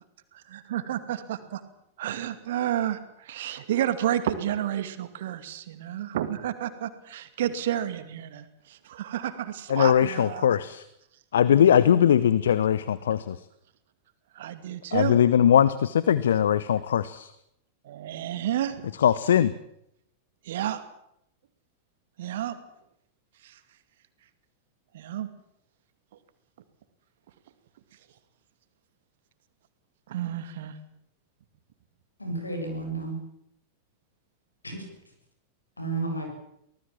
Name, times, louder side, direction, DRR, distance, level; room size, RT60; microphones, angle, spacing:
voice 1, 0.3-1.6 2.0-10.5 12.2-12.6 14.3-15.2 17.8-18.8 20.4-20.8 22.2-22.6 23.4-23.6 24.9-25.3 30.1-30.8, right 11 dB, 55° right, 11 dB, 2.3 m, -31 dB
voice 2, 9.7-10.8 11.3-13.4 14.9-17.3 19.0-19.5, left 9 dB, 65° left, 18 dB, 0.8 m, -20 dB
voice 3, 32.2-33.2 34.6-34.9 35.8-36.4, right 3 dB, 80° left, 4 dB, 6.9 m, -32 dB
24.5 x 19.0 x 7.4 m, 0.75 s
figure-of-eight pair, 90°, 0 cm